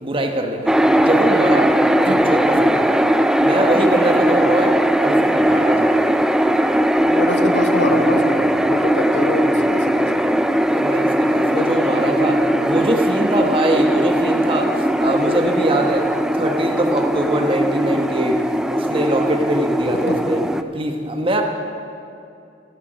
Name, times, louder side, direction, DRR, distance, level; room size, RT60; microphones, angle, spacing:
voice 1, 0.0-2.9 3.4-6.2 10.5-18.4 18.7-20.4 20.7-21.4, right 1 dB, 30° right, 3 dB, 1.1 m, -23 dB
sound 1, 0.7-20.6, right 1 dB, 5° right, 0.4 m, -18 dB
voice 2, 7.1-10.2 11.5-11.7 11.9-12.7 20.1-20.5, left 2 dB, 70° left, 6 dB, 1.1 m, -26 dB
14.0 x 12.5 x 5.2 m, 2.5 s
head